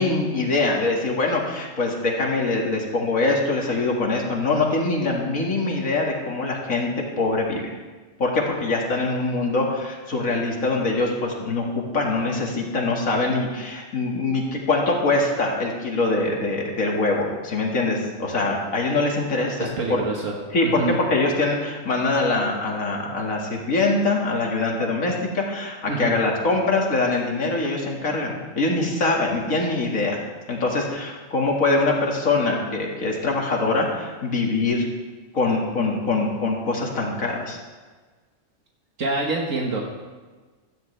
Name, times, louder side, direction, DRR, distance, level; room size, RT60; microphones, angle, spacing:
voice 1, 0.0-7.7 8.2-20.0 20.5-30.2 30.5-34.8 35.3-37.6, left 3 dB, 85° left, -1 dB, 2.4 m, -23 dB
voice 2, 19.6-20.4 20.6-21.0 25.9-26.1 39.0-39.8, right 3 dB, 75° right, -1 dB, 1.8 m, -26 dB
16.5 x 13.5 x 3.3 m, 1.4 s
omnidirectional pair, 1.4 m